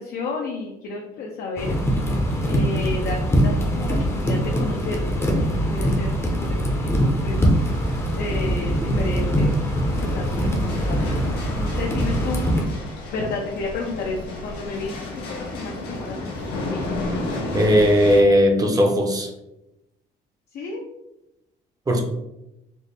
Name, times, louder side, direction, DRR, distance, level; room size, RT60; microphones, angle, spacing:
voice 1, 0.0-1.8 2.5-6.9 7.2-7.5 8.1-9.5 10.0-11.0 11.2-12.5 13.1-16.9 17.2-17.7 18.7-18.8 20.5-20.8, left 3 dB, 65° left, -1 dB, 0.6 m, -32 dB
sound 1, 1.6-12.6, equal, 15° left, 0.6 m, -22 dB
sound 2, 7.4-18.2, left 2 dB, 85° left, 1.1 m, -33 dB
voice 2, 17.5-19.3 21.9-22.0, equal, 20° right, 3 dB, 0.6 m, -17 dB
4.2 x 2.1 x 3.3 m, 0.90 s
cardioid pair, 110°, 17 cm